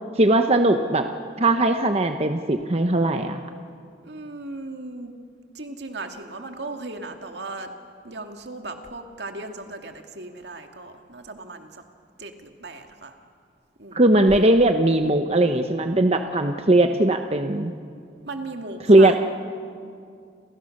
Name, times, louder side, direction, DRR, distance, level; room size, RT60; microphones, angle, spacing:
voice 1, 0.2-1.1 1.4-3.4 13.9-17.7 18.9-19.2, right 1 dB, 35° right, 6 dB, 0.9 m, -19 dB
voice 2, 4.0-5.1 5.5-7.7 8.0-11.7 12.2-13.1 13.8-14.0 18.2-19.2, right 2 dB, 75° right, 5 dB, 2.2 m, -37 dB
30.0 x 27.5 x 6.6 m, 2.3 s
head